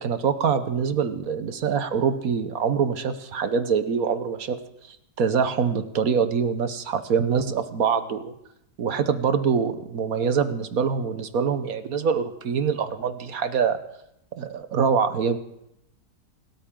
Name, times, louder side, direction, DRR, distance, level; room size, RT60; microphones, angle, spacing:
voice 1, 0.0-4.6 4.9-8.3 8.8-13.8 14.3-15.4, right 6 dB, 60° right, 10 dB, 1.3 m, -24 dB
28.5 x 13.0 x 3.7 m, 0.80 s
omnidirectional pair, 1.9 m